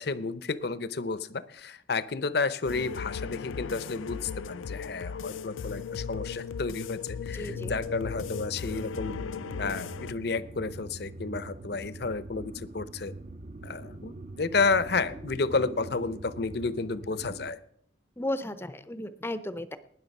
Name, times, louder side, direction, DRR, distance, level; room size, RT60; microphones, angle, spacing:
voice 1, 0.0-7.0 7.3-9.1 9.6-13.1 13.6-17.6, left 4 dB, 55° left, 16 dB, 0.7 m, -31 dB
sound 1, 2.7-10.1, left 6 dB, 85° left, 0.4 m, -37 dB
voice 2, 7.3-7.8 18.2-19.8, left 1 dB, 10° left, 13 dB, 0.6 m, -34 dB
sound 2, 7.4-17.5, right 2 dB, 35° right, 0.5 m, -43 dB
19.5 x 6.6 x 5.4 m, 0.67 s
head